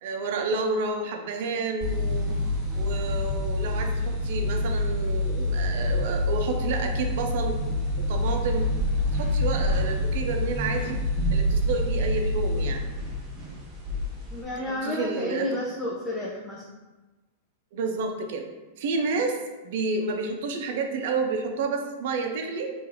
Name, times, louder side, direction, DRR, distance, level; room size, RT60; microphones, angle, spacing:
voice 1, 0.0-2.3 2.8-7.6 8.0-8.7 9.1-11.0 11.3-12.9 14.7-15.5 17.7-18.5 18.8-22.7, right 4 dB, 65° right, 3 dB, 0.5 m, -30 dB
sound 1, 1.8-14.4, left 1 dB, 20° right, 0.9 m, -27 dB
voice 2, 14.3-16.6 19.2-19.3, left 1 dB, 5° left, -7 dB, 0.5 m, -31 dB
2.8 x 2.5 x 3.8 m, 1.2 s
hypercardioid pair, 125°, 0 cm